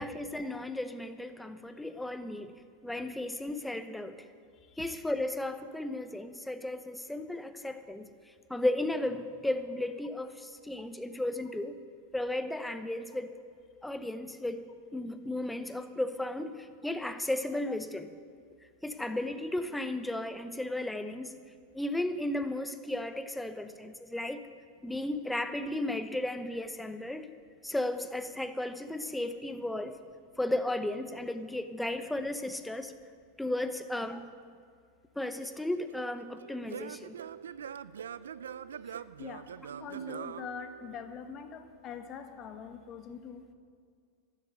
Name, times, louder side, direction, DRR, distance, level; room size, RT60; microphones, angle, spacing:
voice 1, 0.0-2.5 2.8-4.2 4.8-8.1 8.5-11.8 12.1-13.4 13.8-14.6 14.9-18.1 18.8-21.4 21.7-24.4 24.8-27.3 27.6-30.0 30.4-32.9 33.4-34.3 35.2-37.2, left 1 dB, 5° left, 10 dB, 0.9 m, -34 dB
Singing / Plucked string instrument, 35.4-41.3, right 8 dB, 85° right, 0.4 m, -44 dB
voice 2, 39.8-43.5, left 6 dB, 40° left, 7 dB, 1.5 m, -43 dB
12.5 x 8.3 x 9.2 m, 2.1 s
hypercardioid pair, 100°, 0 cm